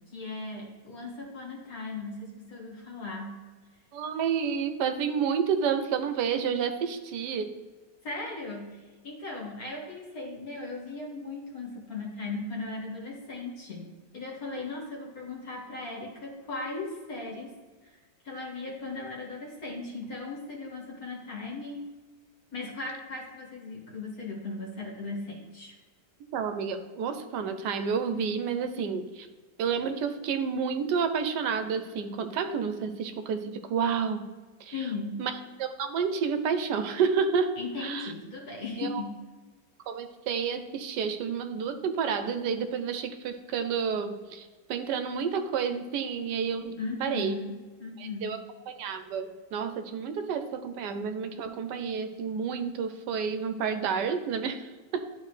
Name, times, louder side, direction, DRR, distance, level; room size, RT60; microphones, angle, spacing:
voice 1, 0.1-3.4 8.0-13.9 14.1-17.5 17.8-18.0 18.2-21.8 22.5-25.8 34.7-35.2 37.6-39.2 46.8-47.5 47.8-48.4, left 3 dB, 60° left, -2 dB, 2.1 m, -37 dB
voice 2, 3.9-7.5 26.3-29.3 29.6-34.3 34.6-34.7 35.2-35.3 35.6-37.5 37.8-38.1 38.8-39.0 39.9-47.4 48.0-48.4 48.7-55.1, right 6 dB, 85° right, 9 dB, 1.3 m, -30 dB
11.5 x 4.0 x 3.2 m, 1.3 s
omnidirectional pair, 1.8 m